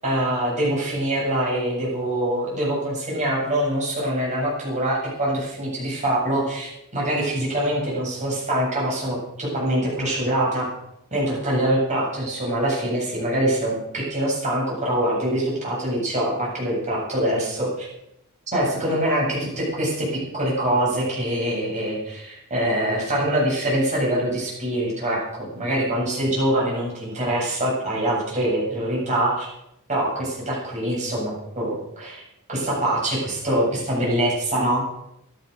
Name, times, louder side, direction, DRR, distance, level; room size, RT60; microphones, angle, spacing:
voice 1, 0.0-10.7 11.1-17.9 18.5-29.5 29.9-32.2 32.5-34.8, right 1 dB, 35° right, -5 dB, 7.7 m, -24 dB
15.0 x 11.5 x 6.6 m, 0.82 s
head